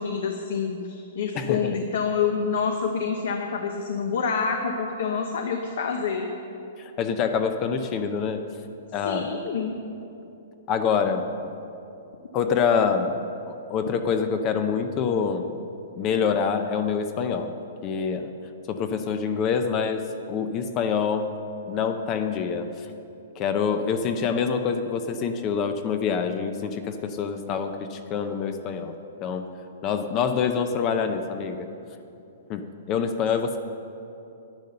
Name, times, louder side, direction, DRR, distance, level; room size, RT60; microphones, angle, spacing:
voice 1, 0.0-6.3 9.0-9.8, left 6 dB, 65° left, 4 dB, 0.9 m, -27 dB
voice 2, 1.3-1.8 6.8-8.4 8.9-9.3 10.7-11.3 12.3-13.2 13.5-15.5 16.0-17.5 17.8-18.3 18.7-21.3 21.7-22.9 23.4-29.0 29.2-29.5 29.8-31.7 32.5-33.6, left 6 dB, 25° left, 8 dB, 0.5 m, -26 dB
10.5 x 10.0 x 6.6 m, 2.8 s
hypercardioid pair, 170°, 0 cm